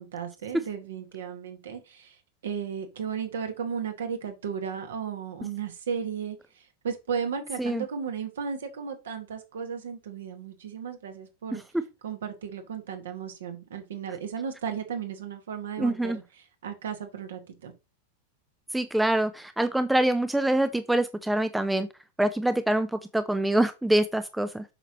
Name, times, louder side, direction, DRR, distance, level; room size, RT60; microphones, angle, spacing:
voice 1, 0.0-11.6 12.0-17.7, right 7 dB, 60° right, 1.7 m, -35 dB
voice 2, 15.8-16.2 18.7-21.9 22.2-24.6, right 1 dB, 5° right, 0.6 m, -25 dB
7.8 x 6.0 x 3.0 m
figure-of-eight pair, 90°, 0 cm